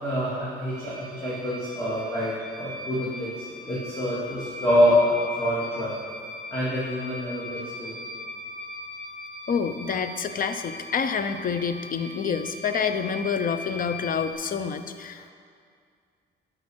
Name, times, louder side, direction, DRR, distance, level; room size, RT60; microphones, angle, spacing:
voice 1, 0.0-3.3 3.6-6.0 6.5-8.0, left 1 dB, 15° left, -10 dB, 2.7 m, -26 dB
sound 1, 0.7-14.3, left 2 dB, 20° right, 2.3 m, -39 dB
voice 2, 9.5-15.3, left 6 dB, 45° left, 10 dB, 0.7 m, -28 dB
11.5 x 5.1 x 6.3 m, 2.2 s
cardioid pair, 90°, 20 cm